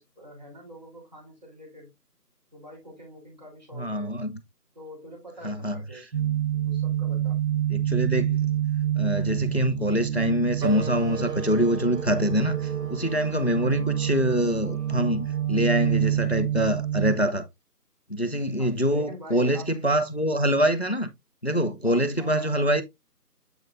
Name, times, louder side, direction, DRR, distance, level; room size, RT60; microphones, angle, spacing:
voice 1, 0.0-1.9 2.5-4.1 4.8-6.1 6.6-7.4 18.6-19.8 21.8-22.5, equal, 25° right, 3.5 m, -45 dB
voice 2, 3.7-4.4 5.4-6.0 7.7-8.5 9.0-17.5 18.1-21.1 21.4-22.8, equal, 40° left, 0.6 m, -25 dB
sound 1, 6.1-17.1, right 11 dB, 60° right, 1.0 m, -27 dB
sound 2, 10.6-15.7, right 6 dB, 80° right, 1.1 m, -38 dB
7.8 x 6.2 x 2.5 m
figure-of-eight pair, 170°, 48 cm